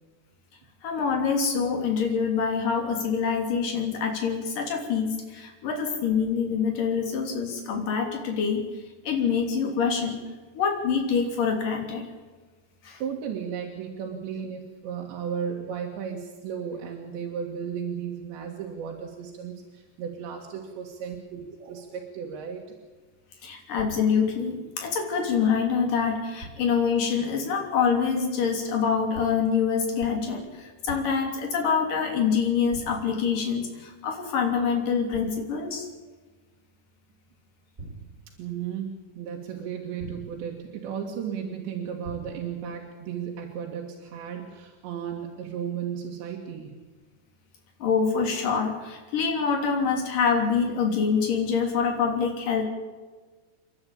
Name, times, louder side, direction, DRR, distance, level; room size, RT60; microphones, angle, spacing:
voice 1, 0.8-8.6 9.0-10.2 10.6-12.0 12.8-13.0 23.4-35.9 47.8-52.7, left 6 dB, 55° left, 3 dB, 4.7 m, -25 dB
voice 2, 13.0-22.6 38.4-46.7, right 7 dB, 85° right, 1 dB, 4.2 m, -34 dB
sound 1, 23.8-24.3 26.4-26.9 29.1-29.6 30.0-30.4 30.9-31.4 32.7-33.3 35.1-35.6 37.8-38.4 40.0-40.6 42.0-42.6, right 2 dB, 20° right, 3.4 m, -43 dB
29.0 x 12.0 x 8.8 m, 1.3 s
omnidirectional pair, 4.9 m